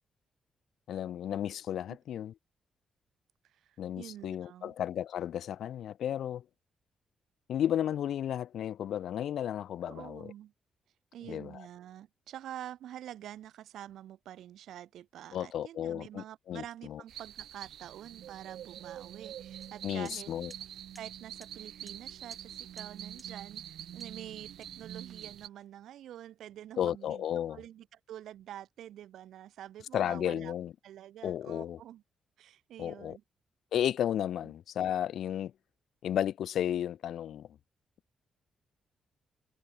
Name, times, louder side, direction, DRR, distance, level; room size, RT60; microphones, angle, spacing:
voice 1, 0.9-2.3 3.8-6.4 7.5-10.3 11.3-11.7 15.3-17.0 19.8-20.5 26.8-27.6 29.9-30.7 31.2-31.8 32.8-33.2 33.7-35.5 36.0-37.5, left 10 dB, 70° left, 3.4 m, -33 dB
voice 2, 3.4-4.7 9.8-10.5 11.1-20.3 21.0-30.5 30.8-32.0 32.4-33.2 34.4-34.5, right 11 dB, 90° right, 4.4 m, -47 dB
sound 1, 17.1-25.5, right 10 dB, 70° right, 3.2 m, -45 dB
sound 2, 19.6-19.7 20.0-20.2 20.5-20.6 20.9-21.1 21.4-21.5 21.9-22.0 22.3-22.5 22.8-22.9 23.2-23.3 24.0-24.2 24.6-25.6, right 1 dB, 5° right, 4.6 m, -56 dB
wide cardioid pair, 165°, 0 cm